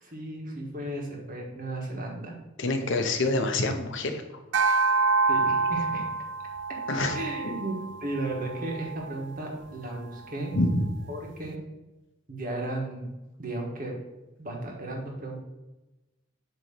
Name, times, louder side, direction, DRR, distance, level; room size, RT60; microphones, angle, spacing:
voice 1, 0.0-2.3 5.3-6.0 7.1-10.6 11.1-11.6 12.3-13.1 13.4-14.0 14.4-15.4, right 2 dB, 45° right, 0 dB, 1.6 m, -34 dB
voice 2, 2.6-4.2 6.9-7.2 10.5-10.9, left 2 dB, 65° left, 5 dB, 0.9 m, -26 dB
sound 1, 4.5-9.1, right 3 dB, 65° right, 0.4 m, -27 dB
8.4 x 3.2 x 5.8 m, 1.0 s
head